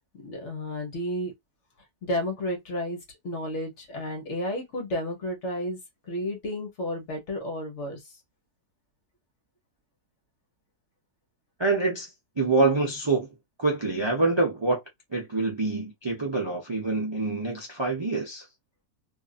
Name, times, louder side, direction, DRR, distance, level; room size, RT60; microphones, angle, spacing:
voice 1, 0.2-1.3 2.0-3.0 3.2-5.8 6.1-8.0, left 1 dB, 55° left, 1.3 m, -32 dB
voice 2, 11.6-12.1 12.4-13.3 13.6-14.8 15.1-18.5, right 3 dB, 30° right, 0.5 m, -26 dB
2.8 x 2.6 x 2.4 m
omnidirectional pair, 1.6 m